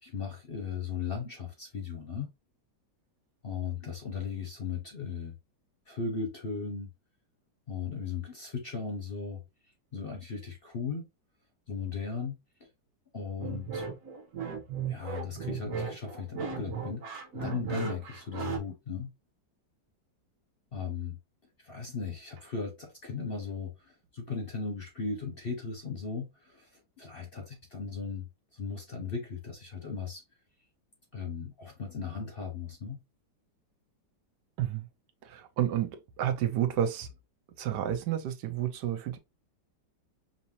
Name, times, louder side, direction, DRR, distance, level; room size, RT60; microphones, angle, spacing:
voice 1, 0.0-2.3 3.4-5.4 5.9-6.9 7.7-9.4 9.9-11.1 11.7-12.4 13.1-13.9 14.9-19.1 20.7-21.2 21.6-28.3 28.5-30.2 31.1-33.0, left 5 dB, 45° left, 0.8 m, -37 dB
sound 1, 13.4-18.6, right 6 dB, 55° right, 1.4 m, -36 dB
voice 2, 35.2-35.9 36.2-37.1 37.6-39.2, right 10 dB, 75° right, 1.2 m, -30 dB
5.2 x 2.8 x 2.7 m
omnidirectional pair, 1.9 m